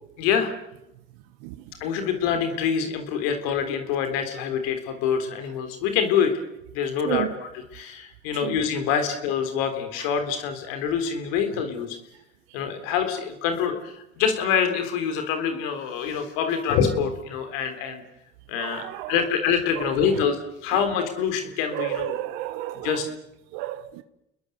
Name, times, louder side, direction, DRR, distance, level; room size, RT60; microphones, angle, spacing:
voice 1, 0.2-0.5 1.8-6.4 6.7-7.3 7.7-12.0 12.5-18.0 18.5-22.1 22.8-23.1, left 7 dB, 85° left, 3.7 m, -25 dB
voice 2, 18.6-19.2 19.8-20.2 21.7-23.0 23.5-24.0, right 15 dB, 85° right, 1.2 m, -31 dB
29.5 x 21.0 x 8.1 m
supercardioid pair, 65°, 29 cm